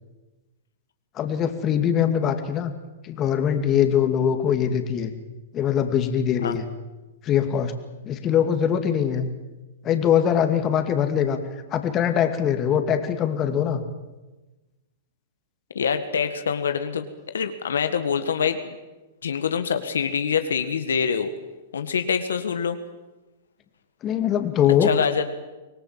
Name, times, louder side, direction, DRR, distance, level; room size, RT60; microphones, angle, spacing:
voice 1, 1.2-2.7 3.0-5.1 5.5-6.6 7.2-7.7 8.0-9.3 9.8-11.4 11.7-13.8 24.0-24.9, left 9 dB, 30° left, 7 dB, 2.5 m, -22 dB
voice 2, 15.8-17.0 17.3-18.6 19.2-21.3 21.7-22.8 24.8-25.2, left 7 dB, 85° left, 8 dB, 1.7 m, -25 dB
25.0 x 19.0 x 7.6 m, 1.1 s
hypercardioid pair, 125°, 0 cm